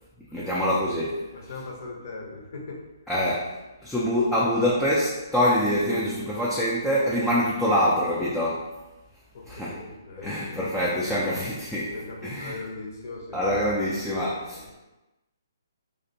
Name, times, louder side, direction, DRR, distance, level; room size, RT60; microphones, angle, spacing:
voice 1, 0.3-1.2 3.1-3.5 3.8-8.7 9.5-9.8 10.2-12.0 12.2-12.6 13.3-14.8, equal, ahead, -8 dB, 0.3 m, -25 dB
voice 2, 1.3-2.8 9.3-11.3 11.9-13.7 14.5-14.7, left 3 dB, 50° left, -1 dB, 0.6 m, -40 dB
2.4 x 2.1 x 2.6 m, 1.1 s
hypercardioid pair, 145°, 2 cm